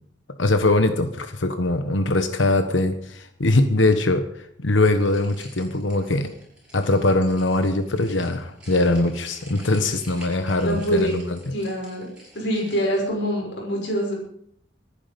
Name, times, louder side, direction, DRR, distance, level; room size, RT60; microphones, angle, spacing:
voice 1, 0.4-4.2 4.6-6.3 6.7-11.4, left 2 dB, 80° left, 8 dB, 1.2 m, -21 dB
sound 1, 4.8-13.0, equal, 5° right, 7.5 m, -48 dB
voice 2, 10.6-11.2 11.5-12.1 12.3-14.1, equal, 65° left, -2 dB, 6.1 m, -25 dB
25.5 x 9.9 x 5.3 m, 0.67 s
head